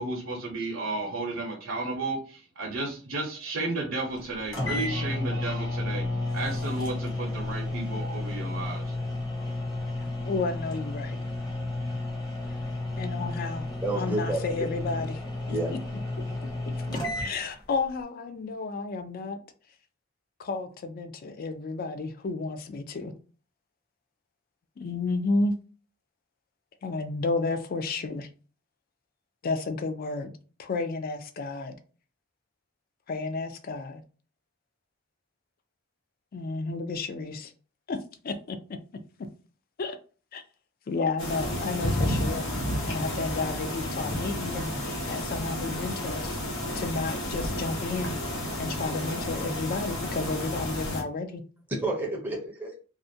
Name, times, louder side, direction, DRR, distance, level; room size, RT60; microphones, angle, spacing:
voice 1, 0.0-6.1 6.3-8.9, right 2 dB, 70° right, 0.6 m, -33 dB
sound 1, 4.2-4.3 4.5-17.3, left 2 dB, 20° left, 0.8 m, -32 dB
voice 2, 10.2-11.3 13.0-13.7 14.0-15.2 15.5-15.8 17.2-19.4 20.4-23.1 24.8-25.5 26.8-28.3 29.4-30.3 30.6-31.8 33.1-34.0 36.3-37.5 37.9-38.0 38.2-38.6 39.8-40.0 40.3-40.4 40.9-42.5 42.9-46.4 46.7-51.4, left 3 dB, 45° left, 0.3 m, -32 dB
voice 3, 13.8-14.7 15.5-15.8 16.9-17.1 51.7-52.7, right 2 dB, 10° right, 0.5 m, -30 dB
sound 2, 41.2-51.0, left 1 dB, 80° left, 0.9 m, -31 dB
2.4 x 2.1 x 2.6 m
head